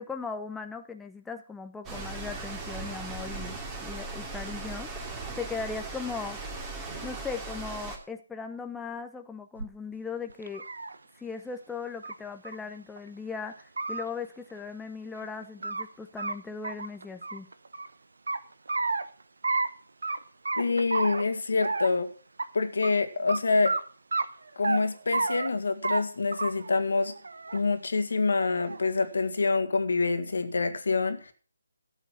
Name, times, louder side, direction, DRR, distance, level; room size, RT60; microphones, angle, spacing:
voice 1, 0.0-4.9 5.4-6.4 7.0-10.7 11.2-17.5, left 5 dB, 5° left, 5 dB, 0.6 m, -38 dB
sound 1, 1.8-8.0, right 3 dB, 15° right, 2.7 m, -38 dB
sound 2, 9.6-9.7 10.3-10.9 12.0-12.1 12.4-12.5 13.0-13.1 13.6-14.0 15.2-15.8 16.2-16.3 16.6-17.9 18.3-19.0 19.4-19.7 20.0-20.2 20.4-21.2 21.6-22.0 22.4-22.5 22.8-22.9 23.3-23.4 23.6-23.8 24.1-24.8 25.1-25.5 25.8-26.0 26.3-26.7 27.1-27.6 28.4-28.9, right 3 dB, 70° right, 1.0 m, -30 dB
voice 2, 20.6-22.1 22.5-23.8 24.6-27.1 27.5-31.3, left 3 dB, 65° left, 9 dB, 1.9 m, -26 dB
13.5 x 8.0 x 6.0 m, 0.40 s
figure-of-eight pair, 150°, 0 cm